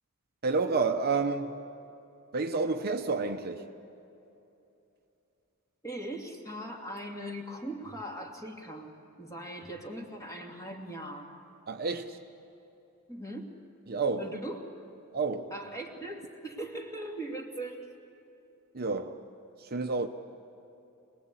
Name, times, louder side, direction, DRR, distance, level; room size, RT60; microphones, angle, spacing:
voice 1, 0.4-1.5 2.3-3.7 11.7-12.2 13.9-14.3 15.1-15.5 18.7-19.2 19.6-20.1, right 4 dB, 45° right, 0.8 m, -29 dB
voice 2, 5.8-11.3 13.1-13.5 14.2-14.6 15.5-17.9, right 1 dB, 15° left, 2.6 m, -40 dB
26.0 x 20.0 x 8.3 m
head